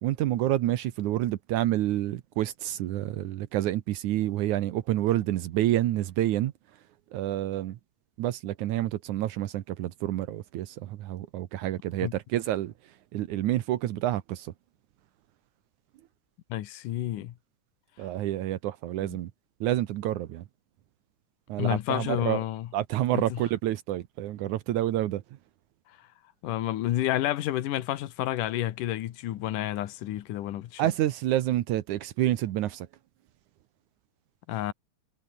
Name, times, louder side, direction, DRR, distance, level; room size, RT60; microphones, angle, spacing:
voice 1, 0.0-6.5 7.1-7.8 8.2-12.7 13.1-14.5 18.0-19.3 19.6-20.4 21.5-22.4 22.7-25.2 30.8-32.9, right 13 dB, 75° right, 2.4 m, -28 dB
voice 2, 16.5-17.3 19.0-19.2 21.6-22.7 23.1-23.4 26.4-30.8 34.5-34.7, left 13 dB, 90° left, 2.8 m, -30 dB
omnidirectional pair, 3.6 m